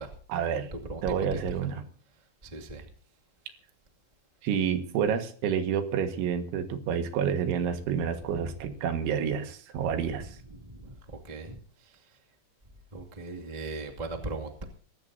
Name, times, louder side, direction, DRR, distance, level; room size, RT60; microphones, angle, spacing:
voice 1, 0.3-0.7 1.0-1.9 4.4-10.4, right 8 dB, 85° right, 7 dB, 4.1 m, -29 dB
voice 2, 2.4-2.9 9.8-10.2 10.6-11.9 12.9-14.6, right 2 dB, 30° right, 1 dB, 0.7 m, -39 dB
24.5 x 14.5 x 2.8 m, 0.42 s
omnidirectional pair, 5.2 m